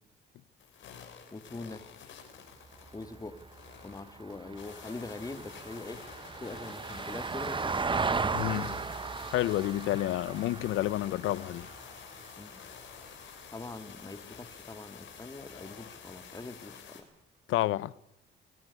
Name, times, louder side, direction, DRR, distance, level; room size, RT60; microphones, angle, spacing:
sound 1, 0.6-17.0, left 7 dB, 75° left, 6.0 m, -50 dB
voice 1, 1.3-1.8 2.9-3.4 3.8-6.0 6.4-7.9 8.2-8.6 12.4-12.5 13.5-17.1, left 2 dB, 20° left, 2.3 m, -43 dB
Vehicle, 2.6-13.1 15.4-15.5, right 4 dB, 25° right, 0.9 m, -37 dB
voice 2, 8.3-8.8 9.3-11.7 17.5-17.9, left 15 dB, 90° left, 0.8 m, -29 dB
22.5 x 17.5 x 9.7 m
cardioid pair, 90°, 20 cm